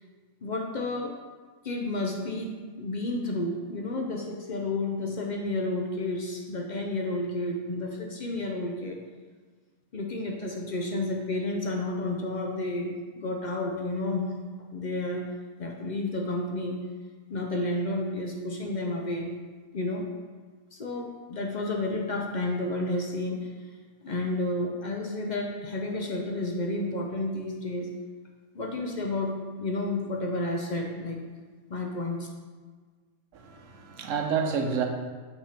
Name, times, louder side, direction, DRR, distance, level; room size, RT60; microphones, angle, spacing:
voice 1, 0.4-1.1 1.6-9.0 9.9-14.3 14.7-15.3 15.6-16.8 17.3-19.3 19.7-20.1 20.7-23.5 24.0-27.9 28.5-29.3 29.6-31.2 31.7-32.3, left 2 dB, 55° left, 1 dB, 0.5 m, -31 dB
voice 2, 33.3-34.9, right 6 dB, 65° right, 4 dB, 1.1 m, -29 dB
5.9 x 3.6 x 5.7 m, 1.5 s
omnidirectional pair, 1.5 m